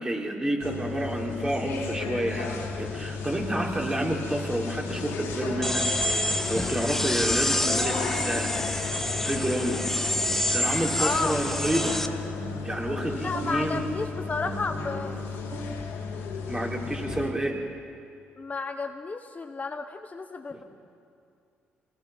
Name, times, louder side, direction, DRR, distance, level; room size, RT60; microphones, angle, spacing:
voice 1, 0.0-5.9 6.2-8.5 9.2-9.8 10.5-12.0 12.6-13.8 16.5-17.6 20.5-20.6, right 1 dB, 20° right, -1 dB, 4.3 m, -29 dB
sound 1, 0.6-17.3, left 5 dB, 80° left, 3.5 m, -34 dB
sound 2, 5.6-12.1, left 1 dB, 10° left, 1.4 m, -27 dB
sound 3, 7.7-9.7 10.1-15.8, right 2 dB, 55° right, 4.0 m, -42 dB
voice 2, 11.0-11.4 13.1-15.2 18.4-20.6, left 4 dB, 35° left, 6 dB, 1.1 m, -32 dB
26.0 x 19.5 x 6.1 m, 2.4 s
supercardioid pair, 60°, 4 cm